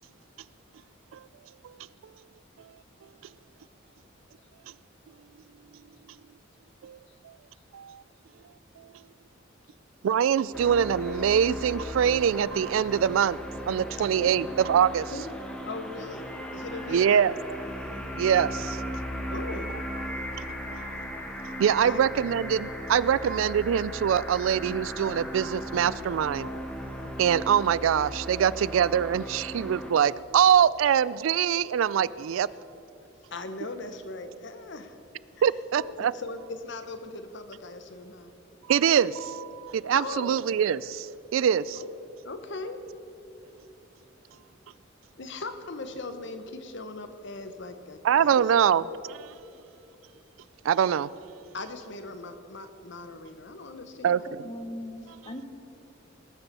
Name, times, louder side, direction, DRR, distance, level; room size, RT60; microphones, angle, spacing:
voice 1, 10.0-13.4 13.7-15.1 16.9-17.3 18.1-18.8 20.4-20.5 20.7-20.9 21.5-26.5 27.2-32.5 35.4-36.1 38.7-41.8 48.0-49.3 50.6-51.1 54.0-54.4, right 8 dB, 80° right, 19 dB, 0.3 m, -24 dB
sound 1, 10.5-29.9, equal, 5° left, 1.4 m, -37 dB
voice 2, 15.7-17.3 19.3-19.8 21.8-22.2 33.3-35.0 35.4-35.5 36.0-38.3 39.5-39.6 39.9-40.4 41.7-41.9 42.2-42.8 45.2-48.4 51.5-54.5, left 3 dB, 65° left, 9 dB, 1.0 m, -39 dB
voice 3, 54.3-55.4, left 1 dB, 30° left, 8 dB, 1.0 m, -39 dB
19.0 x 7.1 x 6.8 m, 2.8 s
head